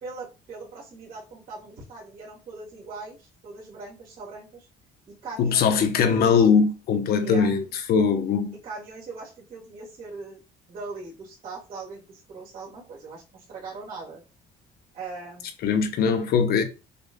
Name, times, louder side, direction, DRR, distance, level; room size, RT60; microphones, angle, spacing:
voice 1, 0.0-4.7 5.1-5.9 7.2-7.5 8.6-10.4 10.7-14.2 14.9-15.5, right 3 dB, 60° right, 2.4 m, -40 dB
voice 2, 5.4-7.6 7.9-8.5 15.6-16.6, left 6 dB, 65° left, 0.9 m, -21 dB
6.8 x 2.5 x 2.3 m
cardioid pair, 110°, 17 cm